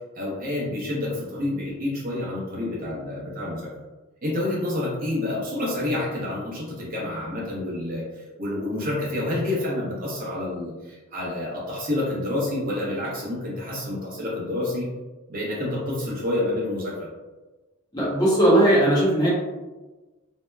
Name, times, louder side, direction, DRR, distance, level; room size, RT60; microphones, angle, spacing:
voice 1, 0.2-3.7 4.2-14.9 15.3-17.1, left 1 dB, 40° right, -5 dB, 0.7 m, -28 dB
voice 2, 17.9-19.3, right 1 dB, 20° left, -7 dB, 0.7 m, -18 dB
2.8 x 2.1 x 2.2 m, 1.2 s
head